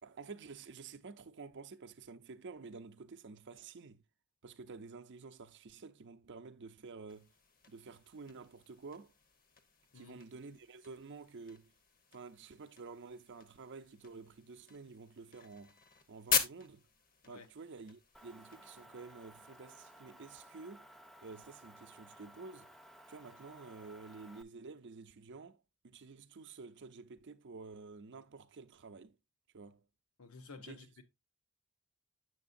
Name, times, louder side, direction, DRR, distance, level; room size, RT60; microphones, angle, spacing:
voice 1, 0.0-4.0 4.4-7.3 7.7-9.1 9.9-11.7 12.1-15.8 16.1-16.9 17.3-20.9 21.2-22.7 23.1-29.2 29.5-29.8 30.6-31.0, right 4 dB, 55° right, 0.6 m, -50 dB
sound 1, 7.1-18.9, left 6 dB, 40° left, 0.9 m, -42 dB
Motor vehicle (road) / Engine, 18.1-24.4, equal, ahead, 0.4 m, -57 dB
voice 2, 30.2-31.0, left 4 dB, 70° left, 1.0 m, -52 dB
7.8 x 6.5 x 2.5 m
head